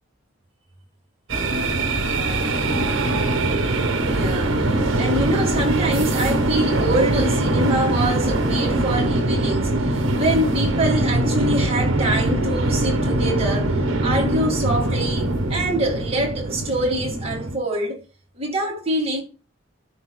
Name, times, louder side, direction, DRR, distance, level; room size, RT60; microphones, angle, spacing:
sound 1, 1.3-17.6, right 1 dB, 65° right, 1.2 m, -22 dB
voice 1, 4.1-18.0 18.3-19.2, right 1 dB, 30° right, 2.0 m, -25 dB
12.5 x 5.5 x 2.3 m
head